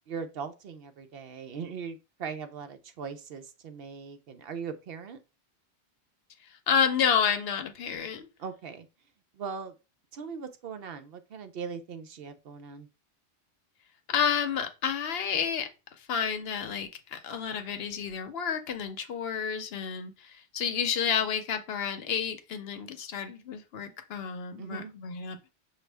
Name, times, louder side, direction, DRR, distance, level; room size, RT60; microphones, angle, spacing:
voice 1, 0.1-5.2 8.4-8.9 9.3-9.8 10.1-12.9 24.6-24.9, right 6 dB, 65° right, 0.8 m, -39 dB
voice 2, 6.7-8.3 14.1-15.7 16.1-25.5, left 7 dB, 70° left, 0.9 m, -30 dB
6.1 x 2.4 x 3.3 m
omnidirectional pair, 1.1 m